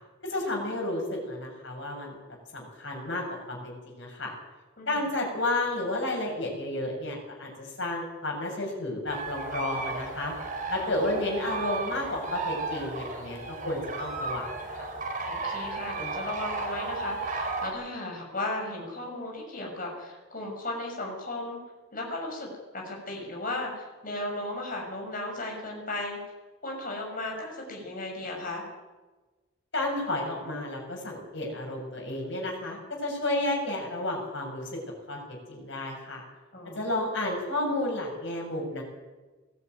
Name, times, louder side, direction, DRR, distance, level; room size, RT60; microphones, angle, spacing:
voice 1, 0.2-2.2 2.5-4.3 4.9-10.3 10.7-14.9 29.7-34.8 35.1-36.2 36.7-38.8, left 1 dB, 60° left, 0 dB, 7.2 m, -32 dB
sound 1, 9.1-17.7, right 3 dB, 40° right, 4.2 m, -34 dB
voice 2, 15.3-21.6 21.9-26.2 26.6-28.6 36.5-36.9, left 2 dB, 40° left, 0 dB, 6.3 m, -36 dB
20.0 x 14.0 x 9.5 m, 1.2 s
head